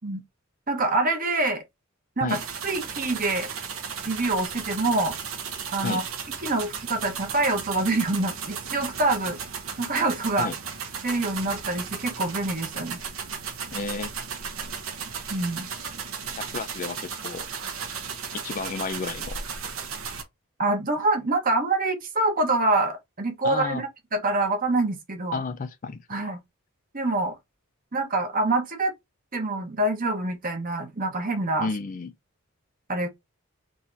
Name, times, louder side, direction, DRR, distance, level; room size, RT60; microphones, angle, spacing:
voice 1, 0.7-1.6 2.2-3.5 4.0-5.1 5.7-6.0 6.4-9.4 9.8-10.5 11.0-13.0 15.3-15.7 20.6-23.8 24.1-25.4 26.1-26.4 26.9-27.3 27.9-28.9 29.3-31.7 32.9-33.1, right 2 dB, 40° right, 1.2 m, -25 dB
sound 1, 2.3-20.2, right 6 dB, 75° right, 1.1 m, -35 dB
voice 2, 13.7-14.1 16.5-17.5 18.4-19.4 23.4-23.8 25.3-26.4 31.6-32.1, left 4 dB, 40° left, 0.4 m, -31 dB
3.8 x 2.8 x 3.8 m
head